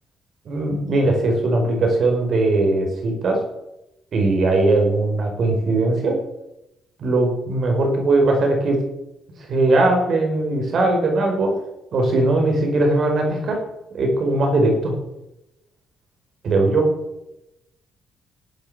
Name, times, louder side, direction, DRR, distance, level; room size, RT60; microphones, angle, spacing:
voice 1, 0.5-3.4 4.1-6.2 7.0-8.8 9.5-11.5 11.9-13.6 13.9-14.9 16.4-16.9, right 2 dB, 60° right, 2 dB, 5.3 m, -19 dB
16.0 x 9.2 x 7.0 m, 0.91 s
cardioid pair, 90°, 0 cm